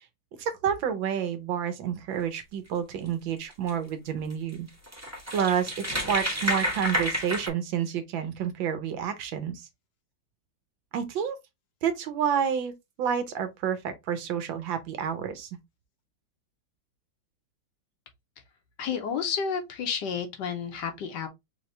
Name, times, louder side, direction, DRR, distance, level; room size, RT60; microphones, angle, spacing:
voice 1, 0.4-4.7 5.3-9.6 10.9-11.4 11.8-12.7 13.0-15.5, right 8 dB, 70° right, 1.5 m, -29 dB
sound 1, 3.5-3.7 4.3-4.4 4.7-7.5, equal, 10° right, 1.0 m, -30 dB
voice 2, 18.8-21.3, left 6 dB, 65° left, 1.3 m, -31 dB
4.2 x 3.1 x 3.1 m
omnidirectional pair, 2.2 m